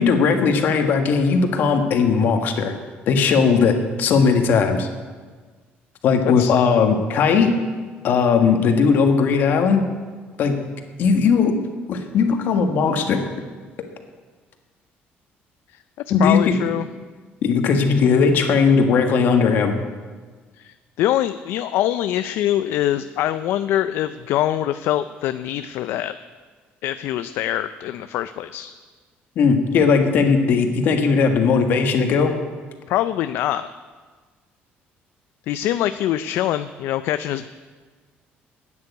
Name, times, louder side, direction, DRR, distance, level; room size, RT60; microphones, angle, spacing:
voice 1, 0.0-2.7 3.1-4.9 6.0-7.5 8.0-9.8 10.4-10.6 11.0-11.5 11.9-13.2 16.1-16.6 17.4-19.7 29.3-32.3, left 5 dB, 55° left, 5 dB, 1.7 m, -18 dB
voice 2, 16.2-16.9 20.6-26.1 26.8-28.7 32.9-33.7 35.5-37.6, left 12 dB, 70° left, 11 dB, 0.4 m, -24 dB
12.5 x 9.7 x 8.2 m, 1.4 s
cardioid pair, 165°, 4 cm